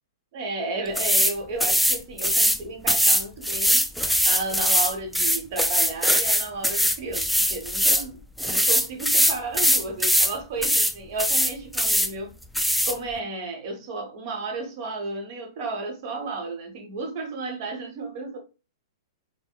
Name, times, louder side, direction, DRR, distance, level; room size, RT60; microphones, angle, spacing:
voice 1, 0.3-3.9 4.2-12.3 12.8-18.4, right 3 dB, 50° right, 1.0 m, -33 dB
sound 1, 1.0-1.3 1.6-2.6 2.9-8.1 8.4-10.3 10.6-10.9 11.2-12.1 12.6-12.9, equal, ahead, 0.3 m, -21 dB
3.4 x 2.0 x 2.3 m
figure-of-eight pair, 110°, 2 cm